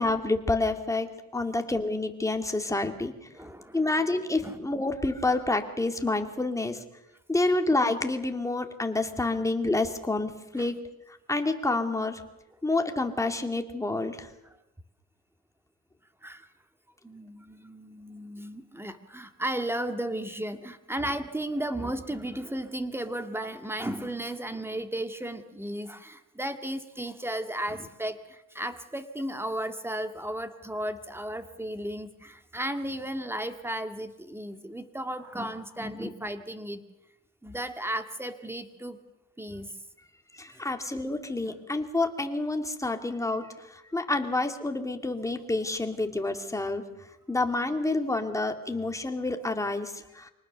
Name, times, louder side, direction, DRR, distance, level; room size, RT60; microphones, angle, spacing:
voice 1, 0.0-3.1 3.7-6.8 7.3-10.8 11.3-12.2 12.6-14.3 36.0-36.1 40.3-46.8 47.3-50.3, left 2 dB, 10° left, 5 dB, 2.4 m, -28 dB
voice 2, 3.3-4.0 4.4-4.6 10.6-10.7 16.2-16.5 17.0-36.8 37.4-39.0 39.4-39.7 40.5-40.6 41.5-41.6, right 1 dB, 10° right, 8 dB, 1.9 m, -34 dB
25.5 x 19.0 x 6.9 m, 0.92 s
cardioid pair, 105°, 30 cm